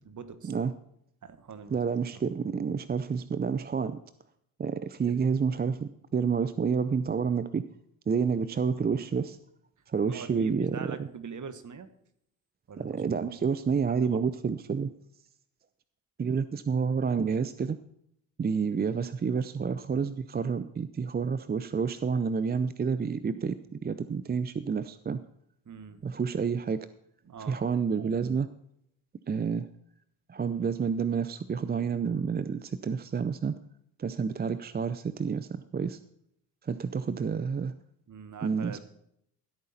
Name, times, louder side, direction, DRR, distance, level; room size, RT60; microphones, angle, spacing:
voice 1, 0.0-0.5 1.2-1.8 5.1-5.2 10.1-11.9 12.7-13.0 13.9-14.2 25.6-26.2 27.2-27.8 38.1-38.8, right 6 dB, 40° right, 11 dB, 1.4 m, -43 dB
voice 2, 1.7-4.0 4.6-7.6 8.1-9.4 9.9-10.8 12.8-14.9 16.2-17.8 18.4-25.2 26.0-26.9 27.5-28.5 29.3-29.7 30.3-33.5 34.0-36.0 36.6-37.7 38.4-38.8, right 6 dB, 20° right, 13 dB, 0.5 m, -29 dB
15.0 x 8.6 x 4.2 m, 0.74 s
hypercardioid pair, 50°, 46 cm